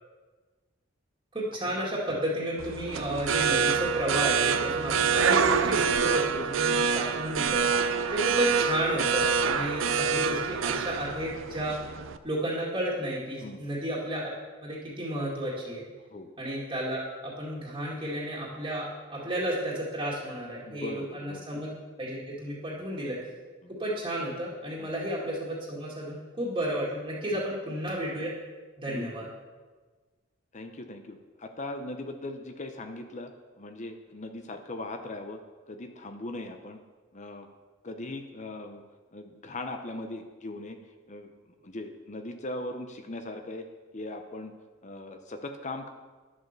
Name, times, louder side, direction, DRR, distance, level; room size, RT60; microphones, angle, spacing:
voice 1, 1.3-11.8 12.2-14.3 14.6-15.8 16.4-21.7 22.0-23.2 23.8-28.3 28.8-29.3, right 1 dB, 25° right, -6 dB, 2.1 m, -32 dB
sound 1, 2.6-12.2, right 6 dB, 90° right, 0.6 m, -26 dB
voice 2, 20.7-21.6 23.6-23.7 24.8-24.9 27.3-27.4 28.9-29.1 30.5-33.3 33.6-35.4 35.7-36.8 37.1-37.5 37.8-38.8 39.1-40.8 41.1-41.3 41.6-43.6 43.9-44.5 44.8-45.9, left 2 dB, 40° left, 6 dB, 0.7 m, -39 dB
10.5 x 7.3 x 6.7 m, 1.3 s
head